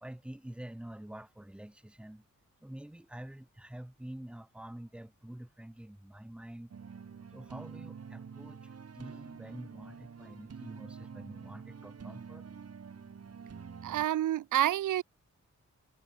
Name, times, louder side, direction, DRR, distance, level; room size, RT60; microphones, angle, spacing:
voice 1, 0.0-2.2 2.6-6.7 7.3-12.5, right 1 dB, 5° right, 0.7 m, -47 dB
sound 1, 6.7-14.1, right 6 dB, 55° right, 2.0 m, -47 dB
voice 2, 13.8-15.0, right 12 dB, 85° right, 0.5 m, -28 dB
wide cardioid pair, 100°, 30 cm